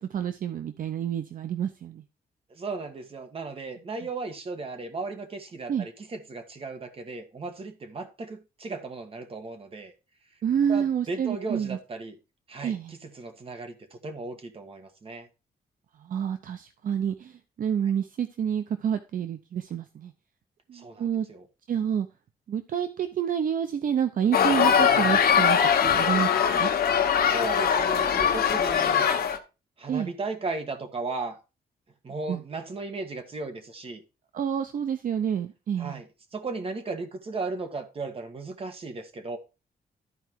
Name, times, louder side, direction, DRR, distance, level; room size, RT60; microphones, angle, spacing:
voice 1, 0.0-2.0 5.7-5.9 10.4-11.8 12.6-12.9 16.0-20.1 20.7-21.3 21.7-22.1 22.5-26.3 26.5-26.7 29.9-30.1 32.3-32.4 34.3-36.0, right 8 dB, 60° right, 0.7 m, -28 dB
voice 2, 2.5-9.9 10.7-12.2 12.5-15.3 20.7-21.5 27.3-29.1 29.8-31.4 32.0-34.0 35.8-39.4, right 3 dB, 35° right, 1.5 m, -36 dB
sound 1, 24.3-29.4, left 7 dB, 75° left, 1.3 m, -22 dB
12.5 x 4.7 x 4.5 m
wide cardioid pair, 150°, 16 cm